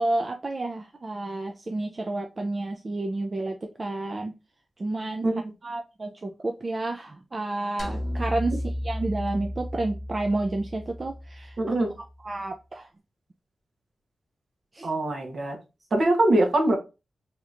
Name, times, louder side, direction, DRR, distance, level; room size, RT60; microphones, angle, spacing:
voice 1, 0.0-4.3 4.8-5.3 5.6-8.6 8.8-11.6 12.2-12.9 14.7-14.9, right 2 dB, 35° right, 3 dB, 0.3 m, -30 dB
sound 1, 7.8-12.2, left 1 dB, 40° left, 0.9 m, -34 dB
voice 2, 11.6-11.9 14.8-15.6 15.9-16.8, right 1 dB, 55° right, 2 dB, 0.8 m, -23 dB
3.2 x 2.8 x 2.4 m, 0.29 s
wide cardioid pair, 110°, 0 cm